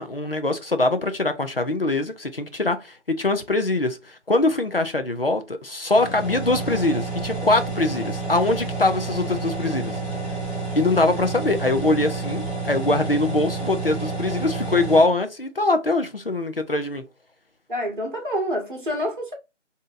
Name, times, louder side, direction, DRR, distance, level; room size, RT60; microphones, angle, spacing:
voice 1, 0.0-10.0 10.7-17.0, left 2 dB, 50° left, 0.5 m, -23 dB
sound 1, 5.9-15.0, right 3 dB, 20° right, 2.1 m, -29 dB
voice 2, 17.7-19.3, equal, 40° right, 1.1 m, -27 dB
3.6 x 2.7 x 2.5 m
figure-of-eight pair, 175°, 37 cm